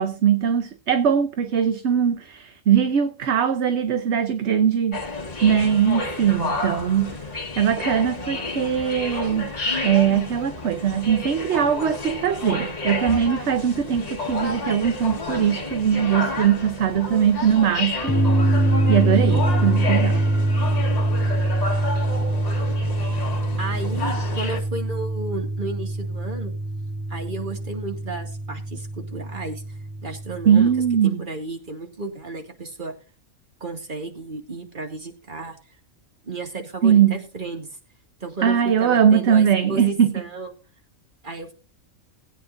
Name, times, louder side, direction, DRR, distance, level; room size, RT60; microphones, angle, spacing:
voice 1, 0.0-5.0 5.4-7.2 7.6-9.5 9.8-18.1 18.9-20.2 30.5-31.2 36.8-37.1 38.4-40.1, right 8 dB, 60° right, 1.0 m, -20 dB
sound 1, 4.9-24.6, left 3 dB, 30° left, 1.5 m, -30 dB
sound 2, 18.1-31.0, right 1 dB, 10° left, 2.1 m, -24 dB
voice 2, 23.6-26.5 27.1-29.6 30.0-30.7 31.0-32.9 33.6-35.6 36.2-37.7 38.2-40.5 41.2-41.5, right 3 dB, 35° right, 2.2 m, -33 dB
20.5 x 8.9 x 2.6 m
omnidirectional pair, 1.5 m